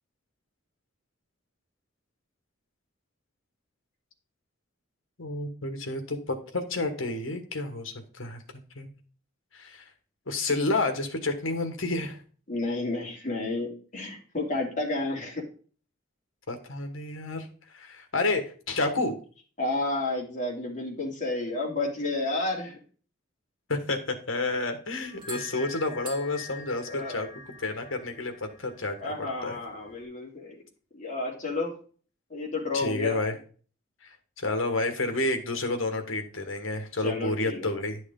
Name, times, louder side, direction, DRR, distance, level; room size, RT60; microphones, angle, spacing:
voice 1, 5.2-8.4 8.7-8.9 9.5-9.8 10.3-12.2 16.5-17.5 17.7-19.1 23.7-27.3 27.6-29.6 32.7-33.4 34.0-38.0, left 2 dB, 75° left, 7 dB, 1.6 m, -30 dB
voice 2, 12.5-15.4 19.6-22.8 26.9-27.3 29.0-30.6 30.9-31.7 32.3-33.2 37.0-37.7, left 2 dB, 40° left, -2 dB, 2.8 m, -31 dB
sound 1, 25.0-30.0, left 2 dB, 25° right, 3.2 m, -45 dB
11.0 x 6.3 x 3.8 m, 0.41 s
head